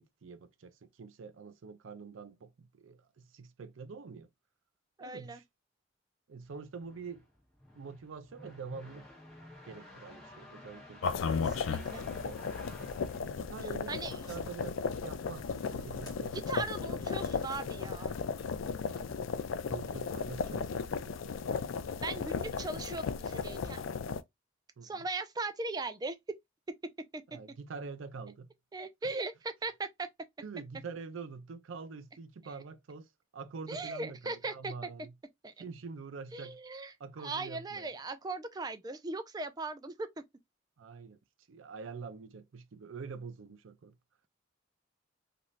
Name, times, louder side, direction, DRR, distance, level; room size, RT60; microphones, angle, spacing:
voice 1, 0.0-4.3 5.0-5.4 6.3-7.2 7.7-9.1 9.7-11.1 12.1-12.4 13.2-17.2 19.7-21.3 24.8-25.0 27.3-28.5 30.4-35.1 35.6-36.6 37.0-37.9 40.8-41.2 41.5-44.0, right 5 dB, 85° right, 0.5 m, -46 dB
voice 2, 5.0-5.4 11.4-12.1 13.9-14.2 16.5-18.1 22.0-23.8 24.8-26.2 27.1-27.2 28.7-30.1 33.7-34.7 35.4-35.6 36.3-40.1, right 3 dB, 20° right, 0.3 m, -39 dB
sound 1, 6.5-14.1, left 1 dB, 5° left, 1.1 m, -52 dB
sound 2, 11.0-24.2, left 5 dB, 85° left, 0.4 m, -35 dB
sound 3, 14.0-22.5, right 1 dB, 20° left, 1.4 m, -57 dB
3.1 x 2.5 x 2.5 m
head